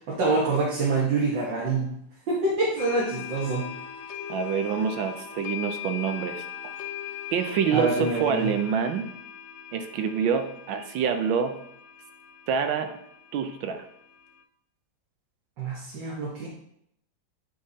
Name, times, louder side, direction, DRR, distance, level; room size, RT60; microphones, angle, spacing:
voice 1, 0.1-2.0 2.3-3.7 7.7-8.5 15.6-16.5, right 3 dB, 75° right, -5 dB, 2.1 m, -26 dB
sound 1, 2.8-14.4, left 9 dB, 65° left, 0.7 m, -40 dB
voice 2, 4.3-6.4 7.3-9.1 9.7-11.6 12.5-13.0 13.3-13.9, right 7 dB, 90° right, 7 dB, 1.5 m, -26 dB
9.7 x 5.7 x 2.8 m, 0.73 s
omnidirectional pair, 2.0 m